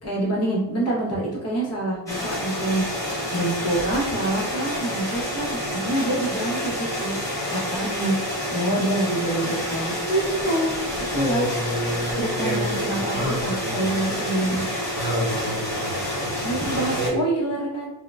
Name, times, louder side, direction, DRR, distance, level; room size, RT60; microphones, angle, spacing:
voice 1, 0.0-2.9 3.3-7.2 7.5-10.7 11.1-11.5 12.1-14.7 16.4-17.9, right 1 dB, 35° left, -5 dB, 0.9 m, -26 dB
sound 1, 2.1-17.1, left 1 dB, 10° left, 0.7 m, -28 dB
voice 2, 11.1-13.9 15.0-17.2, equal, 45° right, -3 dB, 0.8 m, -29 dB
3.7 x 2.1 x 2.3 m, 1.0 s
cardioid pair, 160°, 42 cm